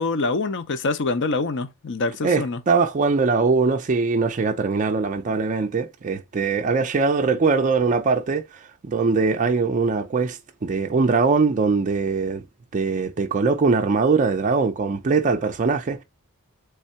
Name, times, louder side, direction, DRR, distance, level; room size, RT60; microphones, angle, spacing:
voice 1, 0.0-2.6, left 3 dB, 55° left, 0.6 m, -25 dB
voice 2, 2.2-12.4 12.7-16.0, right 4 dB, 35° right, 0.4 m, -22 dB
3.6 x 3.4 x 4.2 m
head